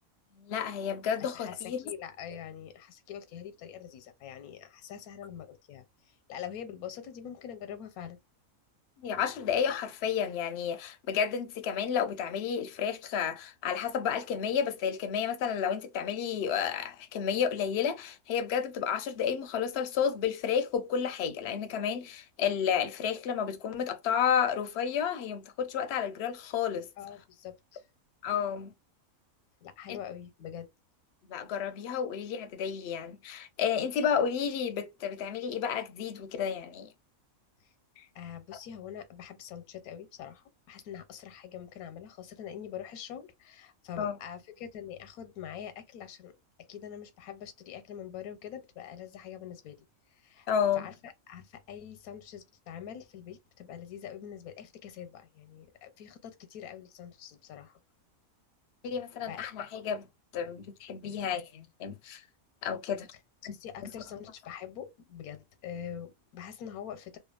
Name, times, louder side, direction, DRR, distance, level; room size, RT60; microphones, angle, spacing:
voice 1, 0.4-1.8 9.0-26.9 28.2-28.7 29.9-30.0 31.3-36.9 38.0-38.1 44.0-44.2 50.5-50.9 58.8-60.0 60.3-62.2 62.6-63.1 63.4-63.6, left 7 dB, 65° left, 0.6 m, -31 dB
voice 2, 1.2-8.2 27.0-27.8 29.6-30.7 37.6-37.7 38.1-46.3 46.7-50.5 50.7-57.8 59.3-59.5 63.1-63.2 63.5-67.2, left 9 dB, 90° left, 1.1 m, -44 dB
2.8 x 2.3 x 2.3 m
omnidirectional pair, 1.5 m